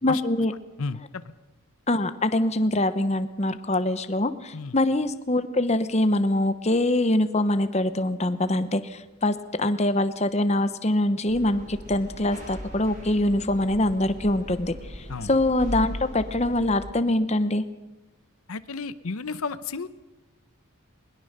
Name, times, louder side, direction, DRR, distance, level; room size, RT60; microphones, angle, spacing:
voice 1, 0.0-0.5 1.9-17.6, left 1 dB, 30° left, 11 dB, 1.0 m, -24 dB
voice 2, 0.8-1.2 4.5-4.7 15.1-15.3 18.5-19.9, left 4 dB, 75° left, 14 dB, 0.8 m, -32 dB
sound 1, 11.3-16.8, equal, 35° right, 7.1 m, -38 dB
21.0 x 21.0 x 6.7 m, 1.1 s
head